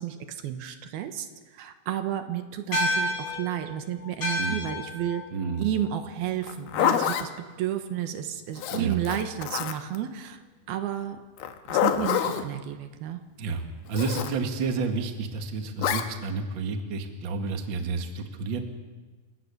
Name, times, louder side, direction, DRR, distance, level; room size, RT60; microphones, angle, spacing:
voice 1, 0.0-5.2 5.6-10.4 10.7-11.2 11.6-13.2, right 11 dB, 85° right, 8 dB, 3.2 m, -32 dB
sound 1, 2.7-7.4, left 1 dB, 45° left, 8.2 m, -32 dB
voice 2, 5.3-5.7 8.7-9.0 13.4-18.6, right 4 dB, 40° right, 5 dB, 1.9 m, -30 dB
Zipper (clothing), 6.4-7.3 8.6-10.0 11.4-12.5 13.9-14.3 15.8-16.1, left 10 dB, 75° left, 3.0 m, -26 dB
28.5 x 17.5 x 6.9 m, 1.3 s
omnidirectional pair, 4.3 m